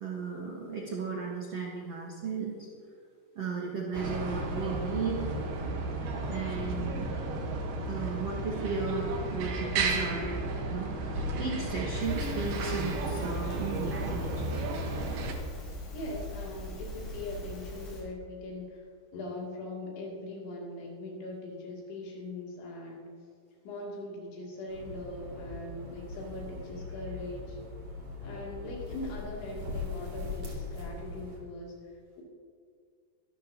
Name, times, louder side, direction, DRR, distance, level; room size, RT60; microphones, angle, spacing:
voice 1, 0.0-2.7 3.3-5.3 6.3-7.1 7.9-14.5, right 4 dB, 85° right, -2 dB, 1.3 m, -35 dB
sound 1, 3.9-15.3, right 2 dB, 70° right, 2.9 m, -33 dB
Crackle, 12.0-18.0, left 1 dB, 50° left, 5.8 m, -41 dB
voice 2, 15.9-18.9 19.1-23.1 23.6-27.6 28.2-32.2, left 2 dB, 75° left, -3 dB, 5.1 m, -41 dB
sound 2, 24.7-31.4, left 3 dB, 35° right, 3.0 m, -40 dB
24.0 x 12.5 x 2.9 m, 2.1 s
omnidirectional pair, 5.3 m